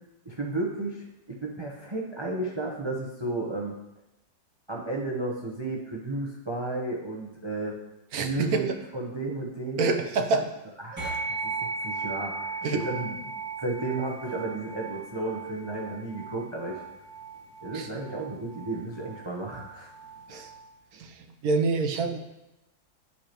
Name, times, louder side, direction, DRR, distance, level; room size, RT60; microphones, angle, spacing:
voice 1, 0.2-3.8 4.7-7.8 8.2-9.8 10.8-13.2 13.6-16.9 17.6-19.9, right 2 dB, 25° right, -2 dB, 0.6 m, -33 dB
voice 2, 8.1-8.7 9.8-10.5 10.9-11.1 12.6-12.8 17.7-17.9 20.3-20.5 20.9-22.2, right 4 dB, 60° right, 5 dB, 1.1 m, -27 dB
sound 1, 11.0-20.7, right 4 dB, 10° right, 2.0 m, -37 dB
11.0 x 5.0 x 3.0 m, 0.93 s
omnidirectional pair, 2.0 m